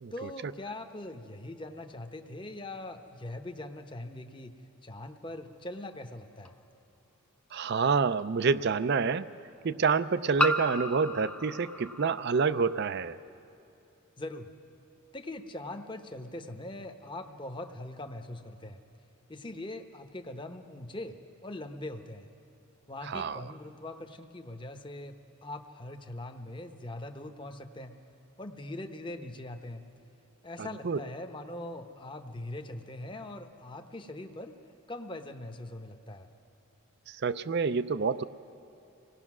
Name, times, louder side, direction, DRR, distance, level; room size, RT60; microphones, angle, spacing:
voice 1, 0.1-4.5 4.8-6.5 14.2-14.5 15.1-18.8 19.3-22.3 22.9-25.2 25.4-28.0 28.4-29.8 30.4-34.5 34.9-36.3, left 1 dB, 20° left, 6 dB, 0.8 m, -41 dB
sound 1, 6.4-6.5 8.2-8.3 10.4-12.9, equal, 5° left, 0.5 m, -33 dB
voice 2, 7.5-9.3 9.6-13.2 23.0-23.4 30.6-31.0 37.1-38.2, right 5 dB, 50° right, 15 dB, 0.4 m, -28 dB
25.5 x 18.5 x 6.1 m, 2.8 s
head